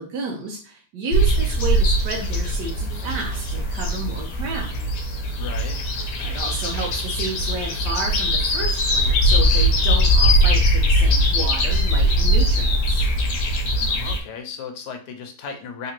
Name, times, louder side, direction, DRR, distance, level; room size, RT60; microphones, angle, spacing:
voice 1, 0.0-2.7 3.0-4.7 6.2-13.1, right 3 dB, 85° right, 0 dB, 1.3 m, -31 dB
sound 1, 1.1-14.2, equal, 65° left, 1.1 m, -20 dB
voice 2, 5.4-5.8 13.8-15.9, left 6 dB, 85° left, 5 dB, 1.3 m, -35 dB
3.6 x 2.9 x 2.9 m, 0.38 s
omnidirectional pair, 1.8 m